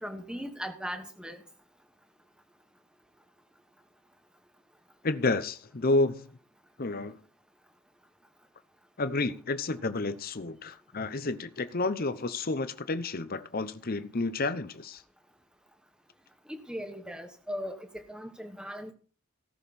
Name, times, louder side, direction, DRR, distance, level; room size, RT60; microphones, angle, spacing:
voice 1, 0.0-1.4 16.5-18.9, equal, 5° right, 1.4 m, -38 dB
voice 2, 5.0-6.3 6.8-7.2 9.0-15.0, left 2 dB, 40° left, 0.8 m, -30 dB
17.5 x 6.5 x 4.3 m
head